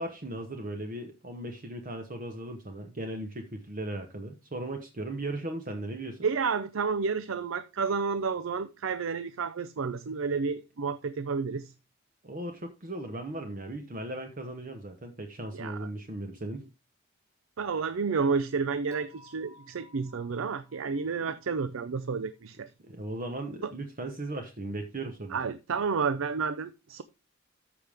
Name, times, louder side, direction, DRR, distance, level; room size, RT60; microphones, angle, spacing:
voice 1, 0.0-6.2 12.2-16.7 22.8-25.5, right 1 dB, 40° right, 1.0 m, -37 dB
voice 2, 6.2-11.7 15.5-15.9 17.6-22.7 23.6-23.7 25.3-27.0, right 5 dB, 80° right, 0.5 m, -30 dB
Dishes pots and pans / Chink clink, 18.9-22.1, equal, 15° right, 3.5 m, -57 dB
13.5 x 5.2 x 3.5 m
head